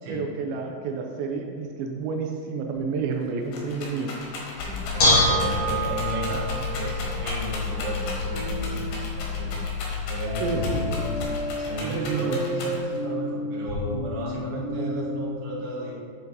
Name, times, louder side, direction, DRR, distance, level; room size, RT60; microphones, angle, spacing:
voice 1, 0.1-4.1 10.4-11.0 11.8-12.4, right 5 dB, 85° right, 2 dB, 2.4 m, -30 dB
Rattle, 2.7-2.8 3.1-13.0 13.7-14.3, left 3 dB, 85° left, 3.1 m, -37 dB
Bell / Dishes pots and pans, 4.6-11.2, left 2 dB, 50° left, 1.6 m, -27 dB
voice 2, 4.6-11.2 11.6-15.9, right 2 dB, 55° right, -5 dB, 1.9 m, -33 dB
sound 1, 8.3-9.1 10.3-15.3, left 2 dB, 65° left, 1.6 m, -33 dB
9.4 x 3.9 x 4.0 m, 2.2 s
omnidirectional pair, 4.3 m